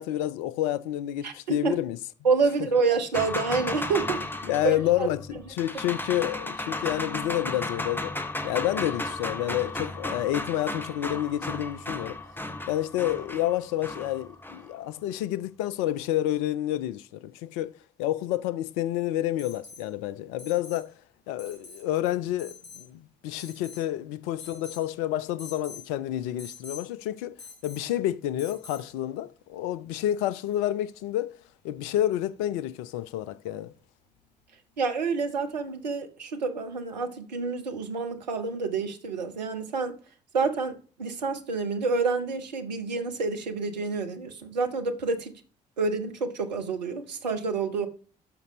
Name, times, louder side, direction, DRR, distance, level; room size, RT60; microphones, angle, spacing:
voice 1, 0.0-2.0 4.4-8.1 8.4-12.2 12.7-17.7 18.0-20.9 21.3-27.3 27.6-31.3 31.6-33.7, left 13 dB, 70° left, 0.6 m, -29 dB
voice 2, 1.2-1.7 2.2-5.1 34.8-40.0 40.3-45.3 45.8-47.9, right 4 dB, 85° right, 0.8 m, -28 dB
sound 1, 3.1-14.7, left 2 dB, 10° left, 1.1 m, -34 dB
Alarm, 19.4-19.9 20.4-20.9 21.4-21.8 22.4-22.9 23.4-23.9 24.4-24.9 25.4-25.9 26.4-26.9 27.4-27.9 28.4-28.9 30.6-30.7, left 4 dB, 85° left, 1.9 m, -45 dB
12.0 x 5.4 x 3.0 m
figure-of-eight pair, 45°, 21 cm